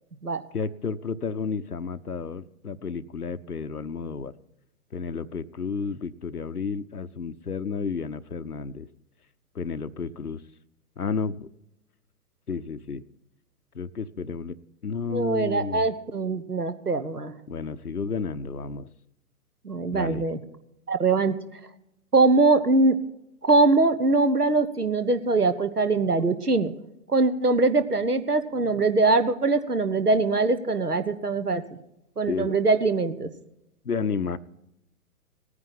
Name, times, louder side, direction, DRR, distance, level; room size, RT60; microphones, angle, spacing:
voice 1, 0.5-4.3 4.9-8.9 9.5-10.4 11.0-11.5 12.5-13.0 13.7-14.6 14.8-15.9 17.5-18.9 19.9-20.2 32.3-32.6 33.8-34.4, left 5 dB, 85° left, 11 dB, 0.8 m, -31 dB
voice 2, 15.1-17.3 19.6-20.4 20.9-21.4 22.1-23.0 23.4-26.7 27.1-31.6 32.2-33.3, right 3 dB, 90° right, 11 dB, 1.2 m, -22 dB
18.0 x 9.8 x 5.7 m, 0.85 s
figure-of-eight pair, 120°, 45 cm